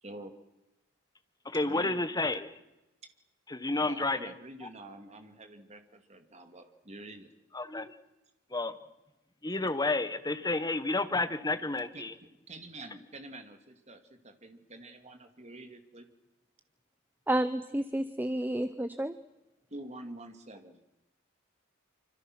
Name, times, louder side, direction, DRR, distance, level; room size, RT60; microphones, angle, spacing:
voice 1, 0.0-0.3 1.5-2.2 3.0-3.1 3.8-7.3 11.9-16.1 19.7-20.8, right 2 dB, 30° right, 6 dB, 2.4 m, -47 dB
voice 2, 1.4-2.5 3.5-4.3 4.6-4.7 7.5-7.9 8.5-8.8 9.4-12.1, left 2 dB, 20° left, 10 dB, 1.3 m, -31 dB
voice 3, 17.3-19.1, right 1 dB, 10° right, 11 dB, 0.8 m, -30 dB
26.0 x 25.5 x 6.2 m, 0.97 s
head